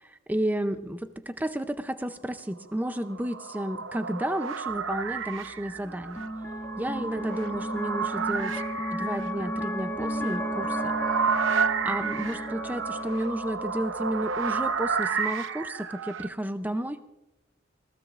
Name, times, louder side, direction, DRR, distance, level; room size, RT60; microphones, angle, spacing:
voice 1, 0.0-6.3 6.8-8.6 8.9-10.9 11.8-17.0, right 1 dB, 10° right, 10 dB, 0.5 m, -32 dB
sound 1, 2.9-16.3, right 5 dB, 90° right, 0.8 m, -31 dB
sound 2, 4.7-15.0, equal, 10° left, 1.7 m, -35 dB
26.5 x 18.5 x 2.5 m, 0.95 s
head